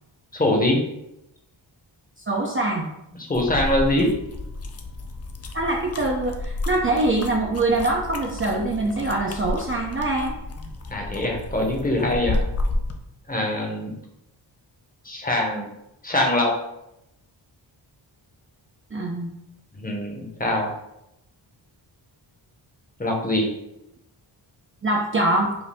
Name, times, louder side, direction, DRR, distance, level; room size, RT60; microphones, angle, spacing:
voice 1, 0.3-0.8 3.3-4.1 10.9-12.4 13.3-13.9 15.0-15.7 16.0-16.5 19.8-20.7 23.0-23.5, left 1 dB, 20° left, 0 dB, 0.8 m, -23 dB
voice 2, 2.3-2.9 5.5-10.3 18.9-19.3 24.8-25.6, right 2 dB, 30° right, -1 dB, 0.5 m, -23 dB
sound 1, 3.3-13.0, left 2 dB, 35° left, 0.4 m, -31 dB
4.8 x 2.6 x 3.4 m, 0.84 s
wide cardioid pair, 145°, 46 cm